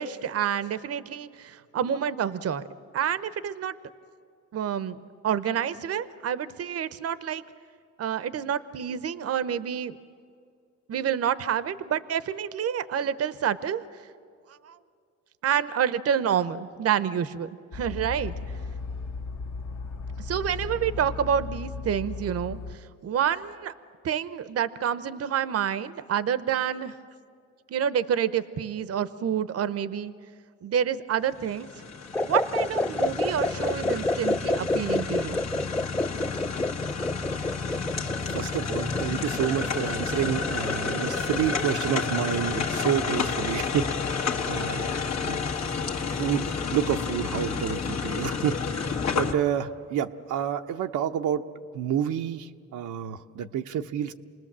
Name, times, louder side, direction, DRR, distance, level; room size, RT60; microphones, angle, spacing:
voice 1, 0.0-2.6 2.9-3.7 4.5-5.0 5.2-7.4 8.0-10.0 10.9-13.8 14.6-14.8 15.4-18.3 20.2-23.7 24.0-26.9 27.7-30.1 30.6-31.7 32.2-35.4, right 9 dB, 55° right, 14 dB, 0.8 m, -28 dB
sound 1, 17.7-22.8, left 4 dB, 80° left, 2.4 m, -36 dB
sound 2, 31.3-49.3, left 5 dB, 60° left, 1.8 m, -30 dB
sound 3, 32.1-41.7, left 2 dB, 10° left, 0.5 m, -29 dB
voice 2, 38.3-45.4 46.2-51.5 51.7-54.1, right 9 dB, 80° right, 5 dB, 0.8 m, -29 dB
27.5 x 19.5 x 7.4 m, 2.3 s
cardioid pair, 90°, 30 cm